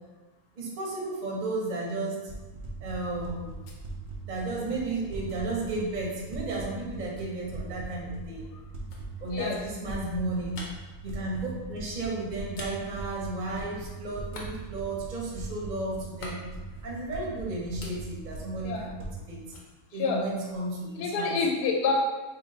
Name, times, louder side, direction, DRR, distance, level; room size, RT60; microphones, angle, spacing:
voice 1, 0.6-2.2 2.8-3.5 4.3-8.4 9.2-10.6 11.0-16.4 16.8-18.9 19.3-19.4 19.9-21.4, right 2 dB, 40° right, -3 dB, 0.7 m, -33 dB
sound 1, 2.3-19.1, right 3 dB, 80° right, 0.4 m, -41 dB
sound 2, 3.3-6.3 7.2-13.8 14.2-17.3 17.6-19.2 19.5-20.8, left 1 dB, 60° left, 1.0 m, -49 dB
voice 2, 21.0-21.9, left 5 dB, 75° left, 0 dB, 1.2 m, -27 dB
3.0 x 2.9 x 3.8 m, 1.2 s
omnidirectional pair, 1.8 m